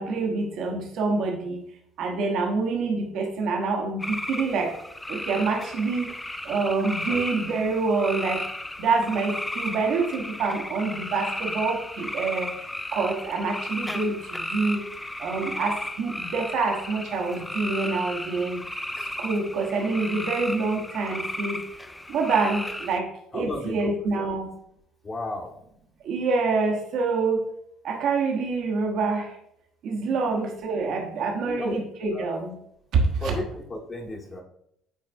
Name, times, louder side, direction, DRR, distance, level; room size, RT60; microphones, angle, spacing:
voice 1, 0.0-1.6 2.0-4.8 5.1-6.1 6.4-8.5 8.8-14.8 15.2-18.6 19.0-21.6 22.1-24.5 26.0-27.4 27.8-29.4 29.8-32.5 32.9-33.3, right 4 dB, 55° right, 2 dB, 1.1 m, -26 dB
sound 1, 4.0-23.0, left 1 dB, 10° left, 0.5 m, -34 dB
voice 2, 23.3-24.3 25.0-25.5 30.2-30.3 31.4-31.8 32.1-32.4 33.2-33.4 33.7-34.4, left 1 dB, 30° left, 0 dB, 1.5 m, -33 dB
9.1 x 4.2 x 2.6 m, 0.73 s
figure-of-eight pair, 55°, 0 cm